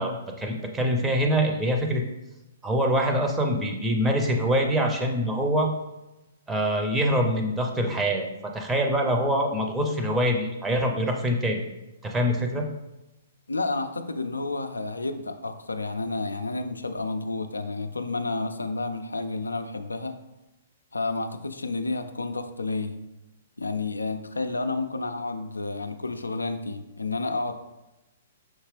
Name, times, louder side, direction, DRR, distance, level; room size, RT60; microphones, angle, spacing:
voice 1, 0.0-2.0 2.6-5.7 6.5-8.2 8.5-11.6 12.0-12.7, equal, 10° right, 2 dB, 0.6 m, -24 dB
voice 2, 13.5-20.2 20.9-23.0 23.6-27.5, left 3 dB, 90° left, 8 dB, 0.3 m, -30 dB
5.7 x 2.8 x 3.2 m, 0.97 s
figure-of-eight pair, 120°, 0 cm